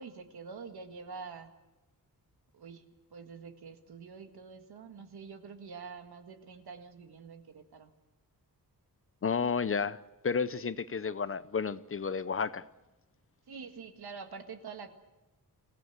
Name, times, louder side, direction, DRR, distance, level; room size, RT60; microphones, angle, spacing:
voice 1, 0.0-1.5 2.5-7.9 13.5-14.9, right 5 dB, 90° right, 1.9 m, -46 dB
voice 2, 9.2-10.0 10.2-12.6, left 5 dB, 35° left, 0.6 m, -31 dB
24.5 x 16.5 x 8.0 m
wide cardioid pair, 135°, 37 cm